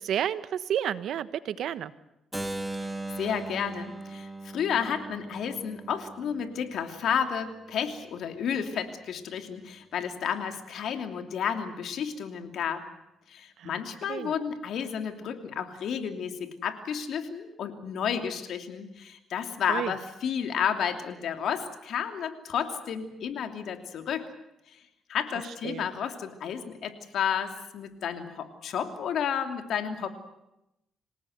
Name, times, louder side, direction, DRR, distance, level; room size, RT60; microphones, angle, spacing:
voice 1, 0.0-1.9 13.6-14.3 19.7-19.9 25.6-25.9, right 10 dB, 70° right, 14 dB, 1.2 m, -31 dB
Keyboard (musical), 2.3-8.2, right 2 dB, 5° right, 2.3 m, -39 dB
voice 2, 3.2-12.8 13.3-24.2 24.7-24.8 25.1-30.1, left 7 dB, 70° left, 6 dB, 2.9 m, -31 dB
27.5 x 18.5 x 8.0 m, 0.89 s
cardioid pair, 90°, 0 cm